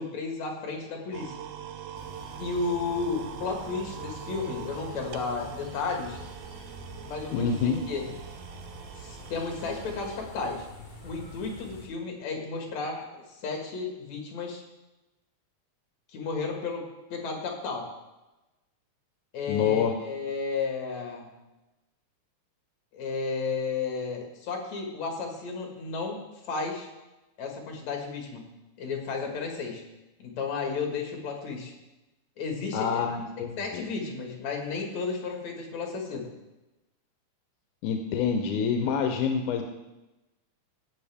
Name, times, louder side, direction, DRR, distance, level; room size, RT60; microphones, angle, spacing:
voice 1, 0.0-1.4 2.4-6.2 7.0-8.1 9.0-10.7 11.0-14.6 16.1-17.9 19.3-21.4 22.9-26.2 26.5-26.9 27.4-29.8 30.2-31.7 32.4-33.2 33.6-36.3, left 4 dB, 65° left, 1 dB, 3.0 m, -33 dB
sound 1, 1.1-10.2, right 9 dB, 75° right, 1.5 m, -42 dB
sound 2, 1.9-11.9, left 2 dB, 25° left, 1.5 m, -47 dB
voice 2, 7.3-7.8 19.5-19.9 32.7-33.8 37.8-39.6, left 6 dB, 90° left, 5 dB, 2.2 m, -27 dB
17.0 x 6.9 x 3.5 m, 1.0 s
omnidirectional pair, 3.4 m